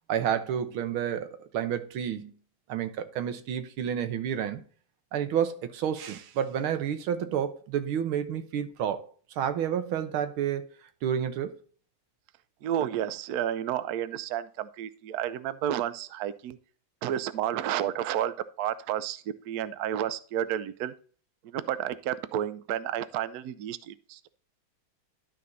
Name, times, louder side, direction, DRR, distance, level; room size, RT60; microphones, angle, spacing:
voice 1, 0.1-2.3 2.7-4.6 5.1-9.1 9.4-10.7 11.0-11.5, right 9 dB, 90° right, 1.8 m, -30 dB
voice 2, 12.6-16.6 17.0-20.9 21.4-24.3, right 11 dB, 70° right, 0.9 m, -31 dB
12.0 x 4.2 x 3.9 m
omnidirectional pair, 2.2 m